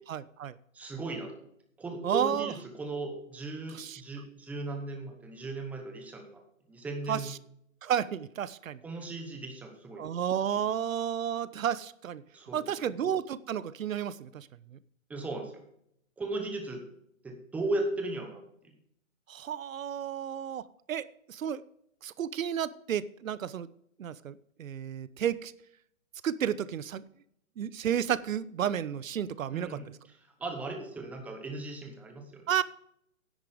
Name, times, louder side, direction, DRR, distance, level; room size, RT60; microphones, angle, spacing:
voice 1, 0.1-0.6 2.0-2.5 3.7-4.0 7.1-7.4 7.8-8.8 10.0-12.2 12.5-14.5 19.3-20.6 20.9-21.6 22.0-23.7 24.0-25.5 26.2-27.0 27.6-29.8 32.5-32.6, right 9 dB, 80° right, 18 dB, 0.8 m, -32 dB
voice 2, 0.7-1.4 1.8-6.4 6.7-7.3 8.8-10.1 12.3-12.6 12.8-12.9 15.1-15.6 16.2-16.8 17.2-18.4 29.5-32.4, right 2 dB, 5° right, 4 dB, 0.9 m, -37 dB
10.5 x 8.4 x 5.0 m, 0.73 s
hypercardioid pair, 155°, 40 cm